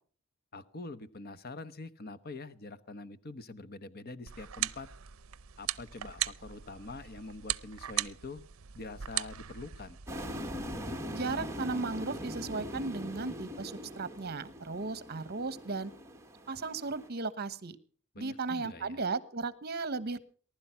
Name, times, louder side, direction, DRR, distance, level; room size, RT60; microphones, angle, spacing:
voice 1, 0.5-4.9 5.6-8.4 8.7-10.0 18.1-19.0, left 3 dB, 45° left, 14 dB, 0.9 m, -45 dB
sound 1, 4.3-10.8, right 13 dB, 70° right, 0.6 m, -39 dB
sound 2, 10.1-17.1, equal, 15° right, 1.4 m, -41 dB
voice 2, 11.1-15.9 16.5-17.8 18.2-20.2, right 4 dB, 45° right, 15 dB, 1.2 m, -36 dB
19.5 x 11.5 x 5.8 m, 0.43 s
head